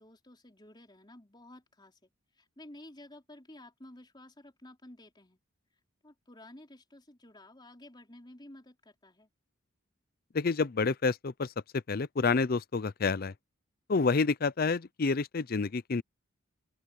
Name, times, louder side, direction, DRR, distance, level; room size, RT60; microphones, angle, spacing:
voice 1, 0.0-5.4 6.0-9.3, left 1 dB, 20° left, 4.1 m, -53 dB
voice 2, 10.3-13.3 13.9-16.0, left 4 dB, 45° left, 0.5 m, -29 dB
open air
head